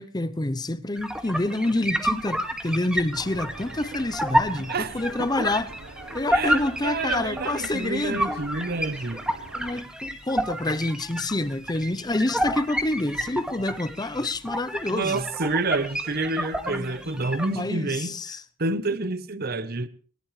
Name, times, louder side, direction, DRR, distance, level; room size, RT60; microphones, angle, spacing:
voice 1, 0.0-5.7 6.1-8.4 9.5-15.3 16.7-18.4, left 2 dB, 20° left, 0.7 m, -28 dB
sound 1, 1.0-17.5, equal, 5° right, 2.0 m, -30 dB
sound 2, 3.1-9.8, right 3 dB, 80° right, 1.1 m, -44 dB
voice 2, 4.5-4.9 5.4-5.5 6.3-9.2 14.9-18.1 18.6-19.9, right 3 dB, 50° right, 0.9 m, -28 dB
20.5 x 20.0 x 3.3 m
head